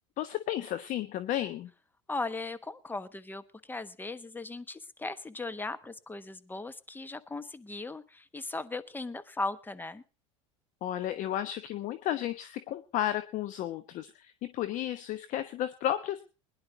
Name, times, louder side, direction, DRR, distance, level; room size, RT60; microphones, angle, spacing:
voice 1, 0.2-1.7 10.8-16.3, left 12 dB, 50° left, 11 dB, 1.0 m, -33 dB
voice 2, 2.1-10.0, left 3 dB, 10° left, 13 dB, 1.1 m, -38 dB
21.0 x 11.0 x 3.9 m, 0.32 s
hypercardioid pair, 90°, 17 cm